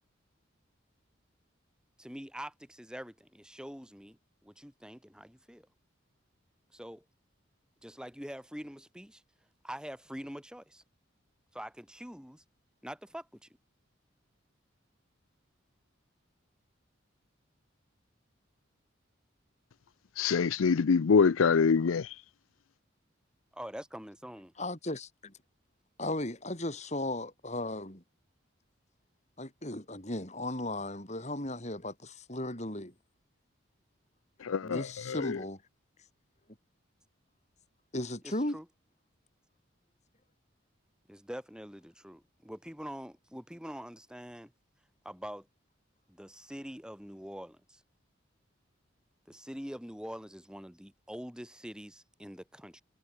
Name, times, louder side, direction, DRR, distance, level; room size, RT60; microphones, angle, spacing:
voice 1, 2.0-5.7 6.7-7.0 7.8-9.2 9.6-10.8 11.5-12.4 12.8-13.5 23.6-24.5 38.2-38.7 41.1-44.5 45.0-45.4 46.2-47.6 49.3-52.8, equal, 5° right, 6.2 m, -44 dB
voice 2, 20.2-22.0 34.4-35.4, left 5 dB, 90° left, 0.5 m, -25 dB
voice 3, 24.6-25.1 26.0-28.0 29.4-31.9 32.3-32.9 34.6-35.6 37.9-38.6, left 1 dB, 35° left, 4.7 m, -35 dB
head